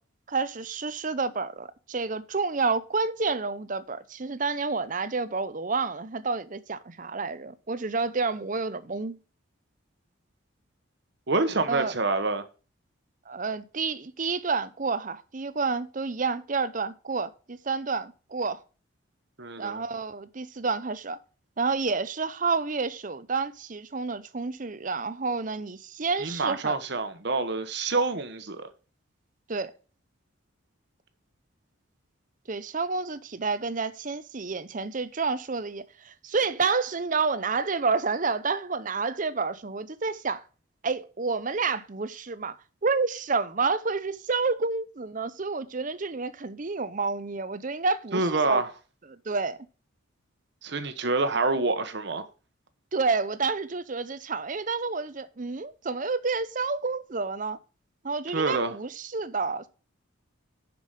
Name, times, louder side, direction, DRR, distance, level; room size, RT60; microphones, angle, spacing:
voice 1, 0.3-9.2 11.7-11.9 13.3-18.6 19.6-21.2 21.6-26.7 29.5-29.7 32.5-40.4 40.8-42.6 42.8-48.6 49.1-49.6 52.9-57.6 58.0-59.7, right 4 dB, 40° right, 0.6 m, -29 dB
voice 2, 11.3-12.4 19.4-19.8 26.2-28.7 48.1-48.7 50.6-52.2 58.3-58.8, right 3 dB, 55° right, 1.1 m, -27 dB
7.2 x 6.1 x 5.1 m
head